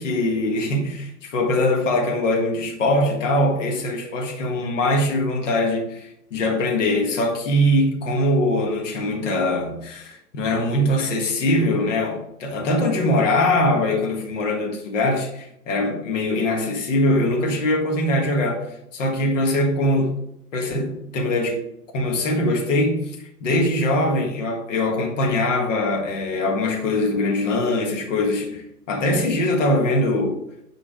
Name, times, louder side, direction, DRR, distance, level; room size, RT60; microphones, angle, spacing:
voice 1, 0.0-20.2 20.5-21.7 21.9-23.2 23.4-30.4, left 1 dB, 45° left, 1.7 m, -22 dB
9.9 x 3.9 x 4.7 m
figure-of-eight pair, 130°, 49 cm